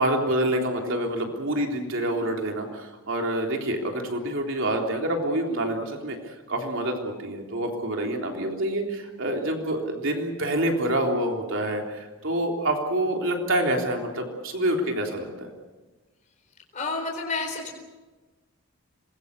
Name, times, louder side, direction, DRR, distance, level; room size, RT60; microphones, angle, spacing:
voice 1, 0.0-6.2 6.5-15.5, right 1 dB, 60° right, 1 dB, 3.6 m, -27 dB
voice 2, 16.7-17.8, left 3 dB, 35° left, 2 dB, 4.2 m, -30 dB
26.5 x 21.5 x 6.9 m, 1.2 s
head